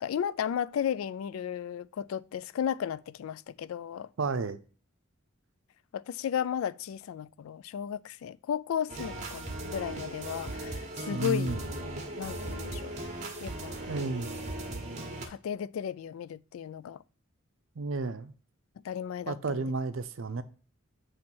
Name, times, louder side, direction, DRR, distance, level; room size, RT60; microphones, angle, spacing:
voice 1, 0.0-4.1 5.9-11.6 12.2-12.9 13.4-13.7 15.3-17.0 18.8-19.6, left 8 dB, 90° left, 0.3 m, -34 dB
voice 2, 4.2-4.6 11.1-11.6 13.9-14.3 17.8-18.3 19.3-20.4, right 3 dB, 75° right, 0.6 m, -32 dB
sound 1, 8.9-15.3, right 1 dB, 35° right, 1.1 m, -38 dB
7.5 x 3.2 x 6.0 m
head